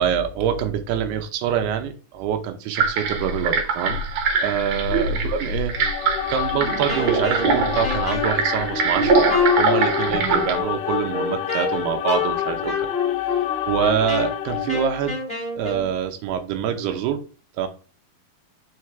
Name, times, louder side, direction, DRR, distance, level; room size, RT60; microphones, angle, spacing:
voice 1, 0.0-4.0 4.4-5.8 6.3-9.2 9.6-12.9 13.7-15.2 15.5-17.2 17.6-17.7, right 8 dB, 90° right, 7 dB, 2.9 m, -25 dB
sound 1, 2.8-10.6, right 4 dB, 65° right, 2.1 m, -23 dB
sound 2, 5.7-15.2, left 11 dB, 80° left, 2.0 m, -29 dB
Wind instrument woodwind instrument, 6.9-15.9, left 5 dB, ahead, 2.1 m, -27 dB
6.3 x 4.8 x 3.3 m, 0.36 s
omnidirectional pair, 4.4 m